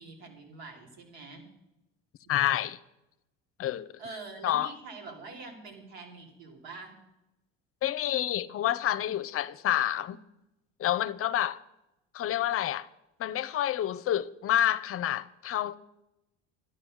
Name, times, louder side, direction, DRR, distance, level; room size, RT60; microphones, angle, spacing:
voice 1, 0.0-1.5 2.2-2.3 4.0-7.0, right 3 dB, 90° right, 3.4 m, -45 dB
voice 2, 2.3-2.8 3.6-3.9 4.4-4.7 7.8-10.2 10.8-11.6 12.1-12.9 13.2-15.7, left 12 dB, 45° left, 0.7 m, -28 dB
12.5 x 10.5 x 6.4 m
supercardioid pair, 85°, 32 cm